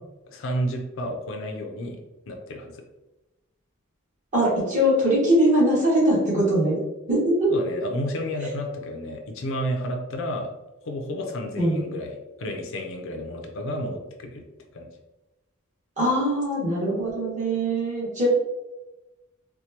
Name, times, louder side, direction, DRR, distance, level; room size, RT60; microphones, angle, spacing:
voice 1, 0.3-2.0 2.3-2.8 7.5-10.5 10.9-14.4 14.7-14.9, equal, 65° left, 3 dB, 0.5 m, -31 dB
voice 2, 4.3-6.8 7.1-7.5 11.6-11.8 16.0-18.3, equal, 35° right, -6 dB, 1.5 m, -21 dB
4.4 x 2.2 x 2.8 m, 1.0 s
head